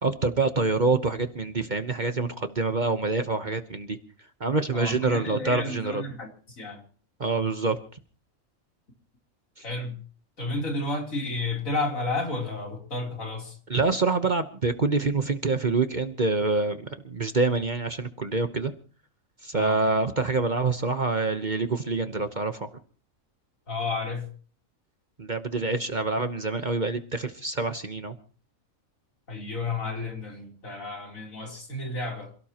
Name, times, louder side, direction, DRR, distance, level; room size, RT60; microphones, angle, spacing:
voice 1, 0.0-4.0 4.4-6.0 7.2-7.8 13.7-18.7 19.4-22.7 25.2-28.2, right 3 dB, 35° right, 1.1 m, -26 dB
voice 2, 4.7-6.3 6.6-6.8 9.6-10.0 10.4-13.6 19.5-19.8 23.7-24.3 29.3-32.3, left 2 dB, 70° left, 4.0 m, -31 dB
27.5 x 17.5 x 3.0 m
omnidirectional pair, 1.4 m